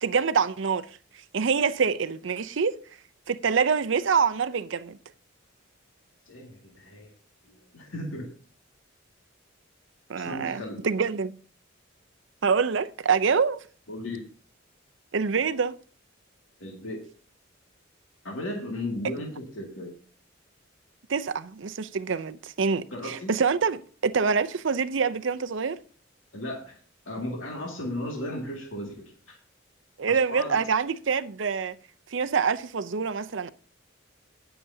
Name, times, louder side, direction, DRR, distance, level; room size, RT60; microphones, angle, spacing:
voice 1, 0.0-0.9 1.3-2.8 3.3-5.0 10.1-11.3 12.4-13.6 15.1-15.8 21.1-25.8 30.0-31.8 32.1-33.5, right 5 dB, 65° right, 0.6 m, -26 dB
voice 2, 6.3-7.1 7.4-8.3 10.2-10.9 13.9-14.3 16.6-17.0 18.2-20.0 22.9-23.3 26.3-26.8 27.1-29.4 30.1-30.8, left 1 dB, 80° left, 2.1 m, -36 dB
19.5 x 6.8 x 2.7 m
head